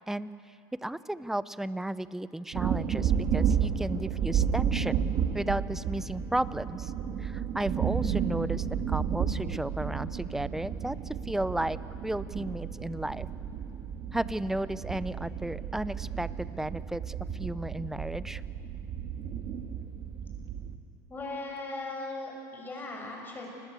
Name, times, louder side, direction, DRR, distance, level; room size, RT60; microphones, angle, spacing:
voice 1, 0.8-6.9 7.2-11.8 12.0-13.3 14.1-18.4, right 1 dB, 5° right, 16 dB, 0.7 m, -34 dB
sound 1, 2.5-20.8, right 8 dB, 50° right, 2.0 m, -32 dB
voice 2, 21.1-23.5, left 2 dB, 20° left, 0 dB, 7.5 m, -38 dB
29.0 x 21.0 x 8.3 m, 2.7 s
supercardioid pair, 110°, 10 cm